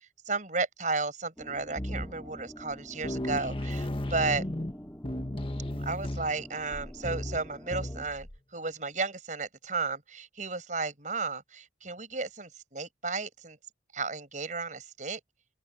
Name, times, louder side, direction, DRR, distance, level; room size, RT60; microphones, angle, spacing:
voice 1, 0.3-4.4 5.8-13.6 13.9-15.2, right 3 dB, 40° right, 6.1 m, -33 dB
sound 1, 1.4-8.1, equal, 10° left, 4.8 m, -48 dB
sound 2, 1.8-2.4 2.7-2.8 3.0-8.4, left 1 dB, 30° left, 1.5 m, -35 dB
open air
head